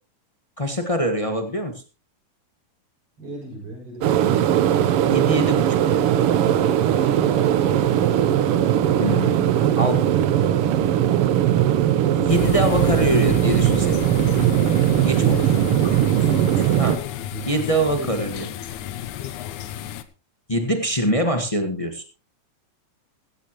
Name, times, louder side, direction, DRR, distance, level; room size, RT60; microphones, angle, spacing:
voice 1, 0.6-1.7 5.0-5.6 5.9-6.1 9.0-10.0 12.1-13.9 15.0-15.5 16.8-17.0 17.5-18.5 20.5-22.0, equal, 25° left, 5 dB, 0.6 m, -24 dB
voice 2, 3.2-4.6 6.3-8.3 15.5-15.6 17.3-17.5 17.9-18.1, right 2 dB, 45° right, -2 dB, 7.7 m, -37 dB
sound 1, 4.0-17.0, right 11 dB, 70° right, 1.4 m, -19 dB
sound 2, 12.3-20.0, left 11 dB, 75° left, 2.3 m, -32 dB
15.5 x 15.0 x 3.1 m, 0.31 s
omnidirectional pair, 3.5 m